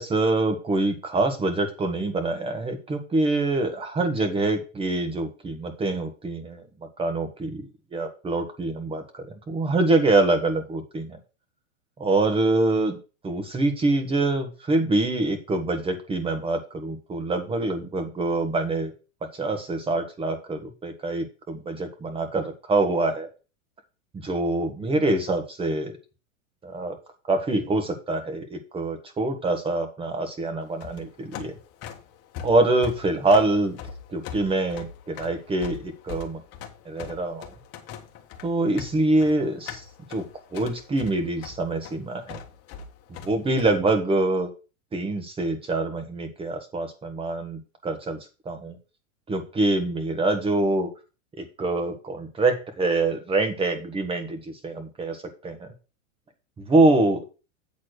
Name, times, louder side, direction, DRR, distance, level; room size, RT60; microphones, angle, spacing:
voice 1, 0.0-6.6 7.0-7.6 7.9-11.2 12.0-13.0 13.2-18.9 19.3-23.3 24.1-26.0 26.6-26.9 27.3-31.6 32.4-33.8 34.1-36.4 36.8-37.5 38.4-39.8 40.1-42.4 43.1-44.5 44.9-48.2 48.4-48.8 49.3-50.9 51.4-55.7 56.7-57.2, right 2 dB, 15° right, 7 dB, 1.5 m, -25 dB
sound 1, 30.7-43.7, left 7 dB, 35° left, 1.5 m, -41 dB
8.6 x 4.2 x 6.4 m, 0.33 s
hypercardioid pair, 140°, 41 cm